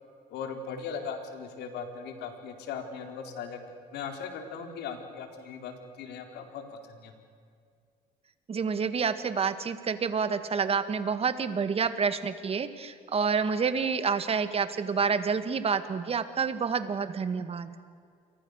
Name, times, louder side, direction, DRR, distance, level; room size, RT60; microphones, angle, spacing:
voice 1, 0.3-7.2, left 6 dB, 80° left, 5 dB, 4.2 m, -39 dB
voice 2, 8.5-17.7, right 6 dB, 35° right, 11 dB, 2.0 m, -28 dB
29.0 x 23.5 x 6.7 m, 2.3 s
cardioid pair, 110°, 17 cm